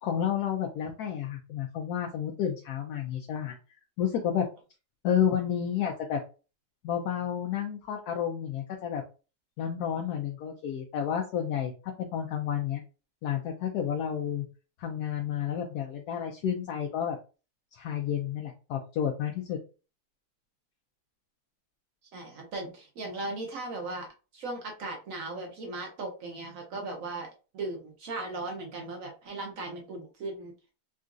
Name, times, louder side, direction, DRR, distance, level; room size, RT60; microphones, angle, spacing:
voice 1, 0.0-3.5 4.0-4.5 5.0-6.2 6.8-9.0 9.6-12.8 13.2-14.4 14.8-17.2 17.7-19.6, left 9 dB, 75° left, 2 dB, 0.9 m, -31 dB
voice 2, 22.1-24.1 24.3-27.3 27.5-30.5, right 2 dB, 60° right, 1 dB, 0.9 m, -37 dB
3.8 x 2.3 x 2.5 m, 0.33 s
omnidirectional pair, 2.0 m